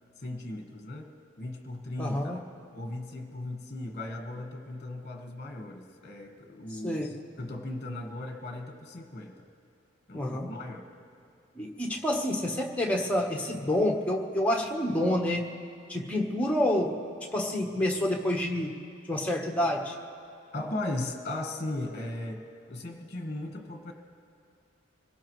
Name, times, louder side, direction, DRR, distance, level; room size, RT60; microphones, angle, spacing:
voice 1, 0.2-1.1 1.4-2.4 2.7-7.1 7.4-9.5 10.1-10.9 20.5-22.4 22.7-23.9, left 2 dB, 35° left, 3 dB, 1.5 m, -37 dB
voice 2, 2.0-2.4 6.7-7.2 10.1-10.5 11.5-15.5 15.9-17.0 17.3-18.8 19.1-19.9, left 1 dB, 5° left, 1 dB, 1.2 m, -28 dB
25.5 x 17.5 x 3.2 m, 2.6 s
head